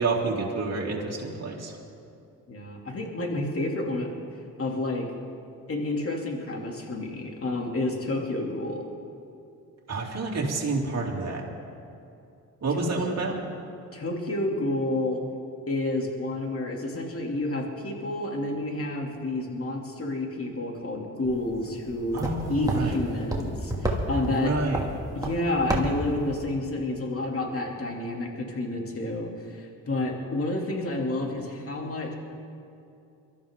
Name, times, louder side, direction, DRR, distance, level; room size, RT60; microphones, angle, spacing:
voice 1, 0.0-1.7 9.9-11.4 12.6-13.4 22.1-22.9 24.3-24.8, right 3 dB, 45° right, -2 dB, 3.0 m, -28 dB
voice 2, 2.5-4.1 4.6-5.1 5.7-8.9 12.8-13.1 13.9-15.2 15.7-22.2 22.5-24.6 25.1-32.1, left 2 dB, 40° left, 1 dB, 2.9 m, -30 dB
sound 1, 21.3-26.5, right 1 dB, 10° right, 2.5 m, -32 dB
22.5 x 13.5 x 3.8 m, 2.6 s
cardioid pair, 75°, 35 cm